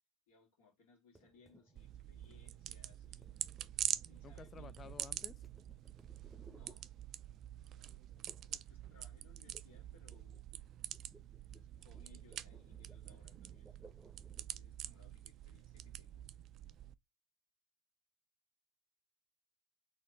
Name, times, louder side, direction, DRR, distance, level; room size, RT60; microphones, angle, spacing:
voice 1, 0.3-3.4 4.0-5.0 6.5-6.9 7.6-10.5 11.5-13.8 14.5-16.2, left 4 dB, 65° left, 2.0 m, -67 dB
sound 1, 1.2-7.5 8.3-8.6 8.9-14.6, right 2 dB, 15° right, 0.8 m, -64 dB
sound 2, 1.8-16.9, right 11 dB, 45° right, 0.3 m, -46 dB
voice 2, 4.2-5.3, left 6 dB, 30° left, 0.4 m, -53 dB
4.1 x 2.9 x 3.8 m
figure-of-eight pair, 75°, 0 cm